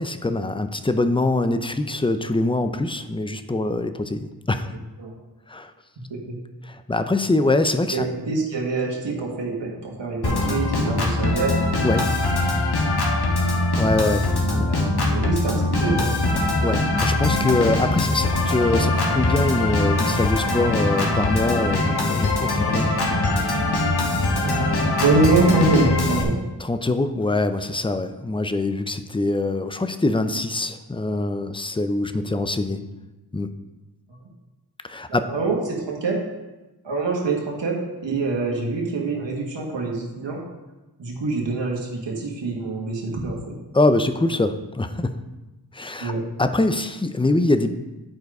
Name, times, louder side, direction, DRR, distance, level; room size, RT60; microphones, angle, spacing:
voice 1, 0.0-4.7 5.5-5.7 6.6-8.1 11.8-12.1 13.8-14.5 16.3-22.9 26.6-32.8 33.3-33.5 34.8-35.3 43.7-45.2 45.7-46.1 46.4-47.7, left 2 dB, 10° left, 9 dB, 0.6 m, -23 dB
voice 2, 7.9-11.6 14.4-16.1 24.4-26.4 35.1-36.2 36.8-37.8 38.0-40.4 41.0-43.5 46.0-46.2, right 3 dB, 80° right, -2 dB, 1.7 m, -25 dB
Organ, 10.2-26.2, left 2 dB, 60° left, 1.6 m, -22 dB
10.5 x 4.5 x 4.8 m, 1.1 s
cardioid pair, 55°, 43 cm